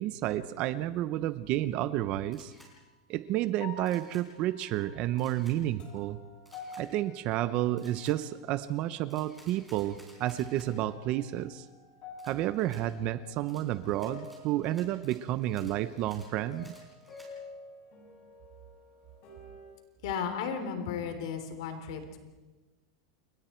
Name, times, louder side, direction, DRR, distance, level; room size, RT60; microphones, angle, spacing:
voice 1, 0.0-2.5 3.1-6.2 6.8-11.7 12.2-16.7, right 13 dB, 35° right, 14 dB, 0.7 m, -31 dB
Camera, 2.3-2.7 3.9-4.2 5.2-5.6 6.4-6.8 7.8-8.2 9.1-10.7 12.2-12.8 13.5-17.3, right 1 dB, ahead, 4.5 m, -57 dB
sound 1, 2.6-3.0 3.6-8.4 8.8-9.6 10.0-19.7, left 3 dB, 40° left, 6.9 m, -50 dB
voice 2, 20.0-22.2, left 6 dB, 60° left, 7 dB, 3.5 m, -34 dB
29.5 x 23.0 x 4.5 m, 1.2 s
supercardioid pair, 160°, 3 cm